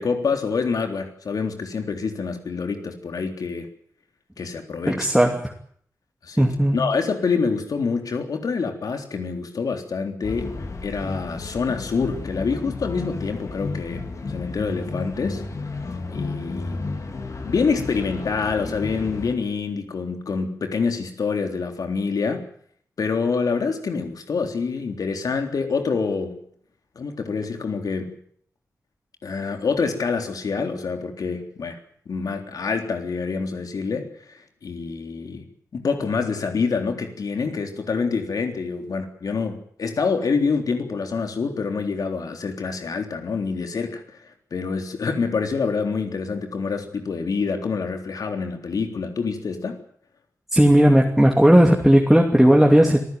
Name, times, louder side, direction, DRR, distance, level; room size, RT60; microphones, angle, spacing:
voice 1, 0.0-3.7 4.4-5.3 6.2-10.5 10.8-14.0 14.3-15.4 16.1-16.8 17.4-22.4 23.0-26.4 27.0-28.2 29.2-31.8 32.1-34.3 34.6-35.5 35.7-44.0 44.5-49.8, left 5 dB, 80° left, 5 dB, 3.6 m, -26 dB
voice 2, 4.9-5.5 6.4-6.8 50.5-53.0, equal, 5° right, 1 dB, 2.7 m, -15 dB
sound 1, 10.2-19.4, left 3 dB, 60° left, 4.1 m, -32 dB
26.0 x 15.0 x 9.4 m, 0.62 s
wide cardioid pair, 120°, 6 cm